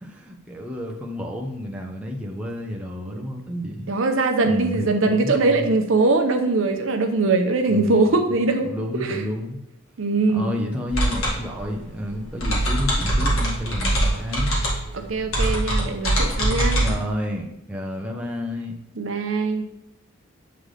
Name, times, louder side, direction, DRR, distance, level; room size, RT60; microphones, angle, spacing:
voice 1, 0.0-3.9 4.4-5.7 7.7-8.3 8.6-9.6 10.3-14.6 16.8-18.8, left 1 dB, 5° right, -1 dB, 0.6 m, -30 dB
voice 2, 3.9-8.7 9.0-9.2 10.0-10.5 14.9-16.8 19.0-19.7, right 3 dB, 65° right, 6 dB, 0.6 m, -21 dB
sound 1, 10.9-16.9, right 1 dB, 75° left, 1.6 m, -23 dB
7.9 x 3.8 x 3.2 m, 0.81 s
head